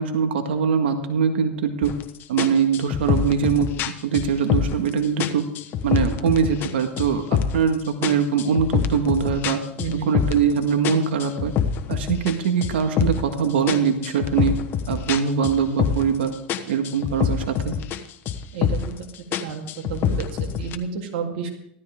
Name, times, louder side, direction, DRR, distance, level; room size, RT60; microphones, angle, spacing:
voice 1, 0.0-1.9 2.3-5.4 5.8-9.6 10.1-11.5 11.9-14.5 14.9-16.3 16.7-17.7, right 7 dB, 85° right, 6 dB, 1.7 m, -22 dB
sound 1, 1.8-2.0 2.4-4.9 5.2-6.7 7.0-7.7 8.0-10.5 10.8-13.3 13.7-16.2 16.5-18.0 18.3-19.0 19.3-20.8, left 8 dB, 40° left, 1.1 m, -25 dB
voice 2, 18.5-19.1 19.4-21.5, right 6 dB, 70° right, 1 dB, 3.3 m, -31 dB
15.0 x 13.5 x 3.7 m, 0.75 s
supercardioid pair, 120°, 6 cm